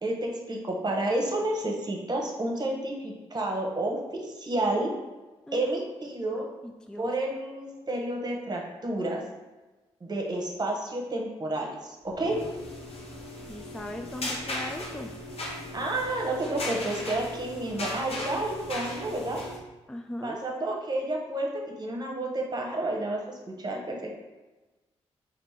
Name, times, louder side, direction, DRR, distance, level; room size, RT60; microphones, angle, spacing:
voice 1, 0.0-4.9 5.5-6.5 7.0-9.2 10.0-12.4 15.7-19.4 20.2-24.1, right 2 dB, 35° right, 0 dB, 1.0 m, -30 dB
voice 2, 6.4-7.1 13.5-15.1 19.9-20.4, left 1 dB, 5° left, 5 dB, 0.3 m, -39 dB
sound 1, 12.1-19.6, left 1 dB, 60° left, 0.9 m, -37 dB
3.3 x 2.5 x 4.2 m, 1.2 s
supercardioid pair, 50°, 12 cm